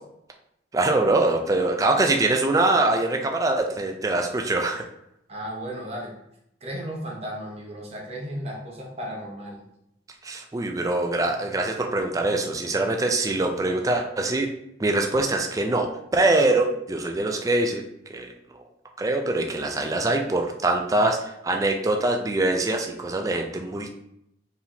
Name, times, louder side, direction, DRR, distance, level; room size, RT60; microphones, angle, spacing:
voice 1, 0.7-4.9 10.2-14.5 14.8-17.8 18.1-18.6 19.0-23.9, right 2 dB, 20° right, 3 dB, 0.4 m, -23 dB
voice 2, 5.3-6.1 6.6-9.6, equal, 35° right, -1 dB, 0.9 m, -34 dB
4.7 x 3.5 x 2.7 m, 0.79 s
head